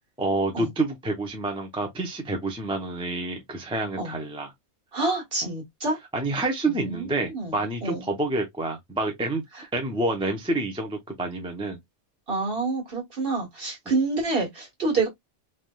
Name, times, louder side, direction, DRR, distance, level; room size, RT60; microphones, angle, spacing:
voice 1, 0.2-4.5 6.1-9.4 9.7-11.8, right 2 dB, 5° right, 0.5 m, -28 dB
voice 2, 4.9-6.0 6.6-7.6 7.8-8.0 12.3-15.1, right 3 dB, 50° right, 1.6 m, -27 dB
3.5 x 2.8 x 2.2 m
omnidirectional pair, 1.2 m